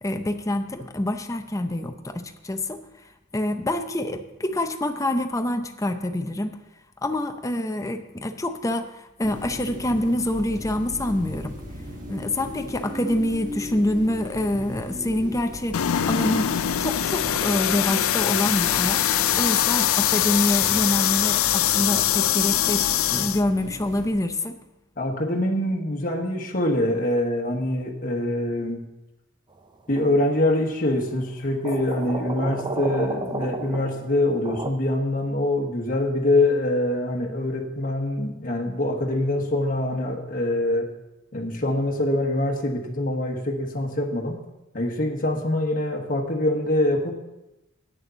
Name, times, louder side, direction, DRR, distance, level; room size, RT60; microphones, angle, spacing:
voice 1, 0.0-2.8 3.3-6.6 7.0-11.6 12.1-16.5 16.8-19.0 19.4-24.6, left 1 dB, 15° left, 7 dB, 0.6 m, -26 dB
sound 1, 9.2-24.1, left 1 dB, 40° right, 1.5 m, -38 dB
sound 2, 15.7-23.4, left 11 dB, 65° left, 0.4 m, -22 dB
voice 2, 25.0-28.9 29.9-40.9 41.3-44.4 44.7-47.2, left 1 dB, 40° left, 0 dB, 1.3 m, -24 dB
sound 3, 30.0-30.3 31.6-34.7, right 2 dB, 20° right, 0.6 m, -32 dB
9.0 x 6.5 x 6.8 m, 0.96 s
head